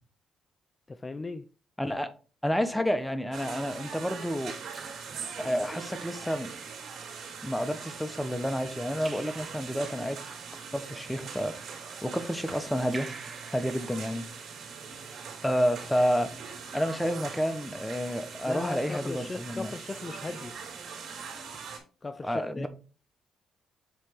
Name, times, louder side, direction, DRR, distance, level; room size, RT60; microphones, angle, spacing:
voice 1, 0.9-1.5 18.5-20.6 22.0-22.7, left 3 dB, 25° left, 0.4 m, -37 dB
voice 2, 1.8-2.1 2.4-4.5 5.4-6.5 7.4-10.3 10.7-11.5 12.0-13.1 13.5-14.3 15.4-16.3 16.7-19.7 22.2-22.7, equal, 5° left, 1.0 m, -29 dB
Raindrop / Drip, 2.9-3.4 4.7-6.1 9.0-10.1 12.9-14.6, right 3 dB, 30° right, 1.1 m, -48 dB
sound 1, 3.3-21.8, right 6 dB, 70° right, 3.3 m, -42 dB
8.1 x 3.4 x 4.5 m
cardioid pair, 90°, 0 cm